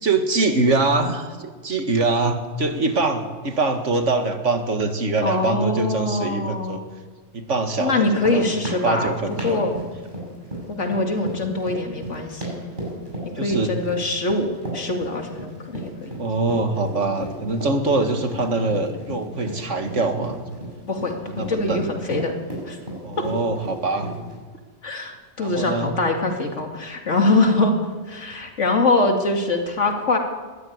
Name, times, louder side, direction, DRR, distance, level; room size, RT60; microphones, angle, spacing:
voice 1, 0.0-6.8 7.3-8.5 8.8-9.7 13.3-13.7 16.2-20.5 21.2-21.9 23.0-24.1 25.4-25.9, right 3 dB, 90° right, 7 dB, 2.3 m, -23 dB
voice 2, 5.2-6.8 7.8-9.1 9.4-9.7 10.7-12.5 13.4-16.2 20.9-22.3 22.7-22.8 23.2-23.3 24.8-27.7 28.1-30.2, left 2 dB, 85° left, 4 dB, 2.9 m, -23 dB
sound 1, 7.9-24.3, right 1 dB, 40° right, 6.7 m, -34 dB
21.0 x 14.5 x 9.6 m, 1.4 s
omnidirectional pair, 1.2 m